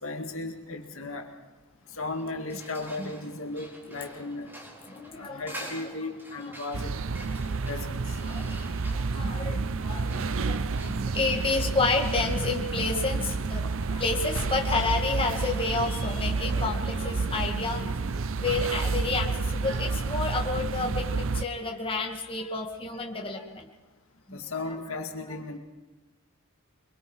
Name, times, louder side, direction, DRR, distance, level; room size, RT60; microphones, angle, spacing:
voice 1, 0.0-1.3 2.0-4.6 5.1-6.9 7.7-8.0 24.3-25.6, left 3 dB, 70° left, 4 dB, 2.3 m, -36 dB
sound 1, 1.8-19.3, equal, 10° right, 4.1 m, -49 dB
voice 2, 4.9-5.9 6.3-6.7 8.2-21.1 21.3-23.7 24.3-24.5, left 3 dB, 25° left, 1 dB, 2.2 m, -30 dB
sound 2, 6.7-21.5, right 4 dB, 65° right, 0.6 m, -30 dB
25.0 x 23.0 x 4.8 m, 1.2 s
head